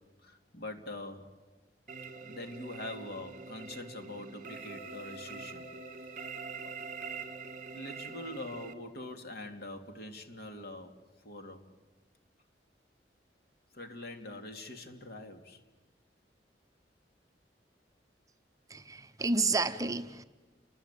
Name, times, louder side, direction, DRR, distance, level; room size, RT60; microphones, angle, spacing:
voice 1, 0.0-1.4 2.2-5.7 6.2-6.3 6.6-6.7 7.7-11.6 13.7-15.6, left 2 dB, 60° left, 6 dB, 2.7 m, -44 dB
sound 1, 1.9-8.7, right 4 dB, 45° right, 1.8 m, -44 dB
voice 2, 18.7-20.2, right 3 dB, 20° right, 9 dB, 0.9 m, -30 dB
29.5 x 21.5 x 8.4 m, 1.2 s
head